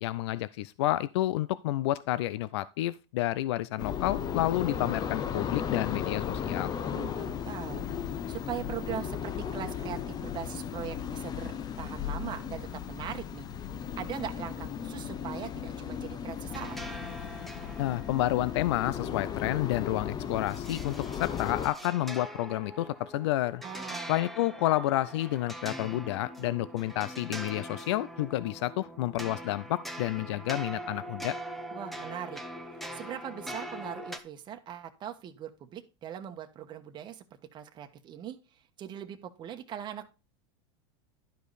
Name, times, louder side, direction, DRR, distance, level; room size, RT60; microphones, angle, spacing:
voice 1, 0.0-6.7 17.8-23.6 24.1-31.4, left 15 dB, 75° left, 0.4 m, -30 dB
sound 1, 3.8-21.7, left 8 dB, 25° left, 0.9 m, -35 dB
voice 2, 6.9-13.5 13.7-16.8 23.6-24.2 31.7-32.4 32.9-37.2 37.5-38.4 38.8-40.1, right 10 dB, 30° right, 1.2 m, -40 dB
sound 2, 16.5-34.2, equal, ahead, 0.9 m, -43 dB
11.5 x 5.1 x 4.1 m
supercardioid pair, 125°, 15 cm